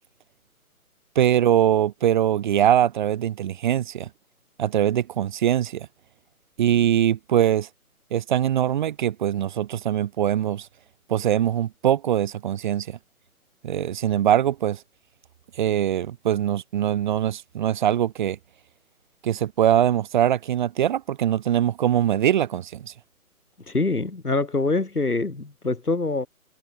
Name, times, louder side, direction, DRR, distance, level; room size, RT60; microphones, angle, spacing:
voice 1, 1.2-4.1 4.6-5.9 6.6-7.7 8.1-10.7 11.1-13.0 13.6-14.8 15.6-18.4 19.2-22.9, right 10 dB, 30° right, 2.4 m, -22 dB
voice 2, 23.7-26.3, left 3 dB, 80° left, 3.4 m, -25 dB
figure-of-eight pair, 140°, 45 cm